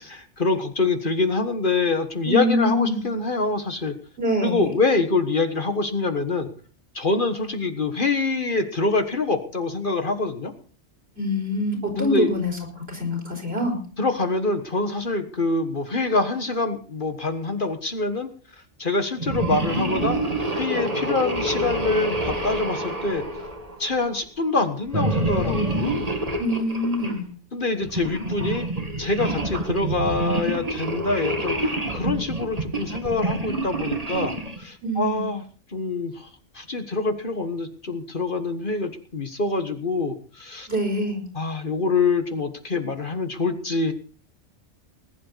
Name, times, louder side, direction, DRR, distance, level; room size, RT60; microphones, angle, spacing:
voice 1, 0.1-3.9 4.4-6.5 6.9-10.5 12.0-12.3 14.0-18.3 18.8-20.2 20.5-23.2 23.8-25.9 27.5-28.7 29.0-35.4 35.7-36.3 36.5-40.7 41.3-43.9, left 3 dB, 45° left, 8 dB, 1.7 m, -25 dB
voice 2, 2.3-3.0 4.2-4.6 11.2-13.8 26.4-27.3 34.8-35.2 40.7-41.2, left 1 dB, 55° right, 2 dB, 5.5 m, -25 dB
sound 1, 19.2-24.0 24.9-27.2 27.8-34.6, right 1 dB, 30° right, 2.1 m, -27 dB
20.0 x 11.5 x 4.1 m, 0.41 s
omnidirectional pair, 1.2 m